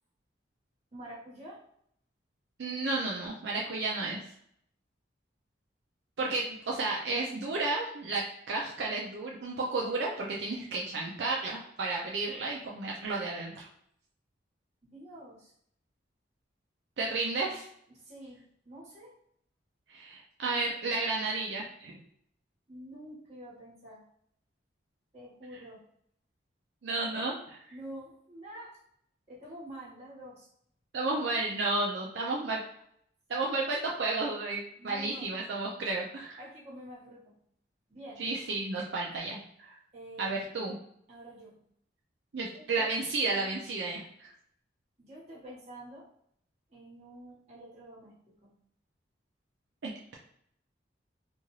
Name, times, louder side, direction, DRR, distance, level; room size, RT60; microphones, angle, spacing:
voice 1, 0.9-1.6 14.8-15.5 17.9-19.1 22.7-24.0 25.1-25.8 27.7-28.8 29.3-30.5 33.6-33.8 34.8-35.3 36.4-37.4 37.9-38.2 39.9-40.5 41.1-41.5 42.3-43.6 45.0-46.1 46.7-48.5, right 1 dB, 35° right, -7 dB, 1.2 m, -48 dB
voice 2, 2.6-4.2 6.2-13.6 17.0-17.6 19.9-22.0 26.8-27.6 30.9-32.6 33.3-36.4 38.2-39.8 40.2-40.8 42.3-44.3 49.8-50.1, right 3 dB, 70° right, -2 dB, 0.5 m, -32 dB
2.6 x 2.3 x 3.1 m, 0.70 s
head